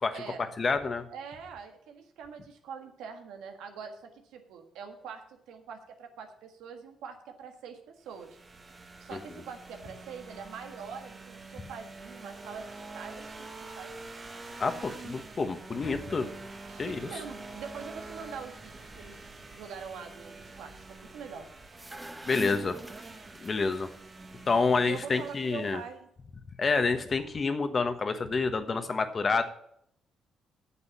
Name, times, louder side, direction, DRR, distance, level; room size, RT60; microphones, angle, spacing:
voice 1, 0.0-1.0 9.1-9.2 14.6-16.3 16.8-17.1 22.3-22.8 23.4-23.9 24.5-25.8 26.6-29.4, left 4 dB, 35° left, 9 dB, 1.2 m, -28 dB
voice 2, 1.1-8.4 9.0-13.9 16.7-21.5 24.8-26.1, right 6 dB, 90° right, 5 dB, 1.6 m, -44 dB
sound 1, 8.1-25.9, right 3 dB, 30° right, 1.5 m, -46 dB
sound 2, 21.7-23.8, right 1 dB, 10° right, 0.9 m, -42 dB
8.5 x 7.4 x 7.3 m, 0.69 s
cardioid pair, 90°, 0 cm